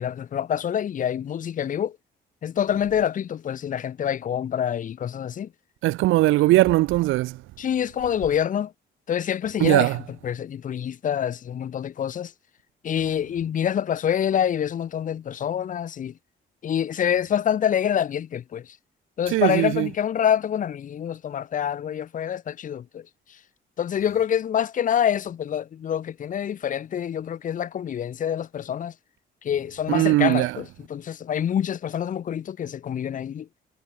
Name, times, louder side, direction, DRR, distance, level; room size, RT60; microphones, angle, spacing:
voice 1, 0.0-2.0 2.4-5.5 7.6-8.7 9.1-9.9 10.2-12.3 12.8-16.1 16.6-18.8 19.2-23.0 23.8-28.9 29.4-33.5, left 9 dB, 40° left, 0.5 m, -26 dB
voice 2, 5.8-7.4 9.6-10.0 19.3-19.9 29.9-30.6, right 18 dB, 90° right, 0.6 m, -20 dB
cardioid pair, 90°, 20 cm